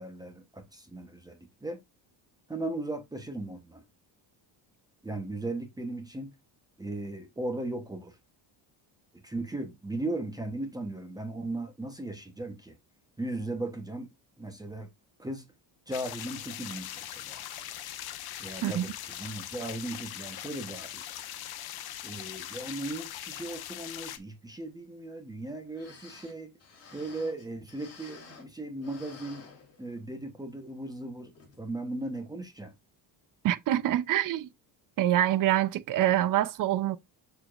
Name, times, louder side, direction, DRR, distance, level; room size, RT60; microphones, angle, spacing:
voice 1, 0.0-1.8 2.5-3.8 5.0-6.3 6.8-8.2 9.2-12.8 13.2-14.1 14.4-14.9 15.2-15.5 15.9-17.4 18.4-18.9 19.2-21.0 22.0-26.5 26.9-29.4 29.8-31.3 31.6-32.7, right 2 dB, 10° right, 1.0 m, -37 dB
sound 1, 15.9-24.2, left 12 dB, 55° left, 1.0 m, -41 dB
sound 2, 25.4-25.5 25.7-28.6 28.8-30.2 30.6-30.7 31.3-31.6 32.0-32.1, left 4 dB, 30° left, 3.6 m, -52 dB
voice 2, 33.4-34.5 35.0-37.0, right 13 dB, 45° right, 0.7 m, -25 dB
7.0 x 6.8 x 2.5 m
cardioid pair, 170°, 45 cm